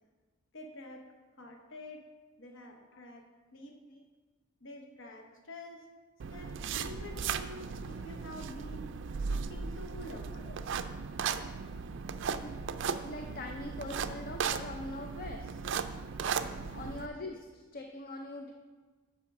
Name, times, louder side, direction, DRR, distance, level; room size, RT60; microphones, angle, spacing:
voice 1, 0.5-1.0 1.4-2.0 2.4-3.2 3.5-3.8 4.6-5.8 6.3-8.8 9.3-10.3 16.8-17.0, left 1 dB, 65° left, 2 dB, 1.0 m, -47 dB
sound 1, 6.2-17.1, right 6 dB, 60° right, 0.4 m, -37 dB
voice 2, 12.4-15.5 16.2-18.5, left 2 dB, 45° left, 4 dB, 0.5 m, -43 dB
8.1 x 5.1 x 5.9 m, 1.3 s
head